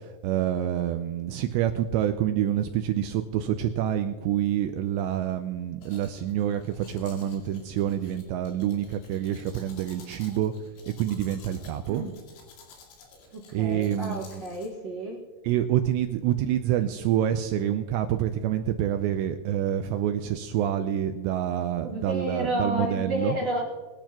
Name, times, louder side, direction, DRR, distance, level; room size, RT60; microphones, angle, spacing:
voice 1, 0.2-10.5 10.9-12.0 13.5-14.4 15.4-23.4, right 11 dB, 85° right, 7 dB, 2.5 m, -27 dB
Domestic sounds home sounds, 5.8-14.7, left 4 dB, 90° left, 4.9 m, -52 dB
voice 2, 13.3-15.2 21.8-23.6, right 1 dB, 60° right, -2 dB, 1.8 m, -31 dB
22.0 x 10.5 x 2.9 m, 1.4 s
omnidirectional pair, 5.7 m